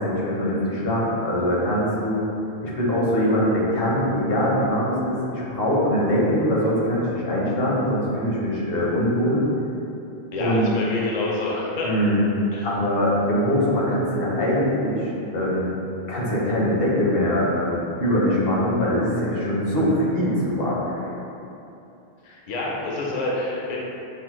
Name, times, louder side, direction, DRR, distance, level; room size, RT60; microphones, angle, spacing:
voice 1, 0.0-2.2 2.6-9.4 10.4-10.7 11.8-12.2 12.6-15.7 16.1-21.0, equal, 70° left, -6 dB, 1.0 m, -22 dB
voice 2, 10.3-11.9 12.5-12.7 22.2-23.8, left 2 dB, 50° left, -4 dB, 0.6 m, -27 dB
5.5 x 2.0 x 3.0 m, 2.8 s
omnidirectional pair, 1.0 m